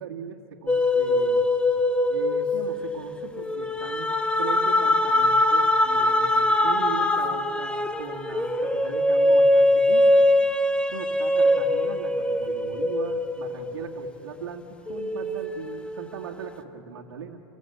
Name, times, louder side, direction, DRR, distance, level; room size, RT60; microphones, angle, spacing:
voice 1, 0.0-1.5 2.1-10.2 10.9-17.4, right 7 dB, 85° right, -2 dB, 2.0 m, -39 dB
sound 1, 0.7-14.4 14.9-16.5, left 1 dB, 10° left, 1.4 m, -23 dB
27.5 x 20.5 x 8.1 m, 2.8 s
hypercardioid pair, 110°, 13 cm